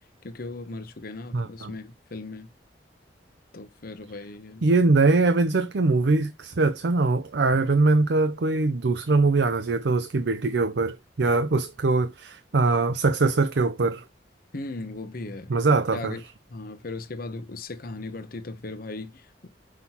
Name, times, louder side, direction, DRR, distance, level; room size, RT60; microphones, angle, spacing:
voice 1, 0.2-2.5 3.5-4.7 14.5-15.5 15.9-16.2 16.5-19.5, left 2 dB, 55° left, 0.9 m, -37 dB
voice 2, 1.3-1.7 4.6-14.0 15.5-16.2, right 3 dB, 70° right, 0.6 m, -22 dB
6.1 x 5.6 x 2.9 m
head